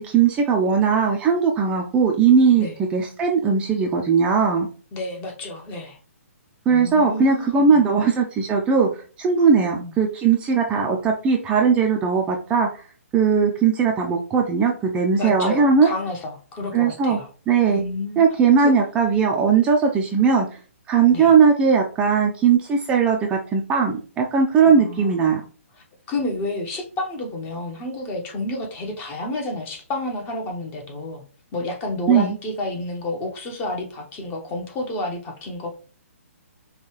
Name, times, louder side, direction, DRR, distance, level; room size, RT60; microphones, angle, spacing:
voice 1, 0.0-4.7 6.7-12.8 13.1-15.9 16.7-17.2 17.5-17.8 18.2-20.5 20.9-25.4 32.1-32.4, right 6 dB, 15° right, 0 dB, 0.5 m, -19 dB
voice 2, 4.9-6.0 6.7-7.8 9.5-9.9 15.2-17.3 17.7-18.2 18.6-18.7 21.1-21.3 24.6-25.2 26.1-31.2 31.5-35.7, left 2 dB, 25° left, 2 dB, 1.0 m, -30 dB
5.2 x 2.3 x 3.2 m, 0.38 s
hypercardioid pair, 145°, 8 cm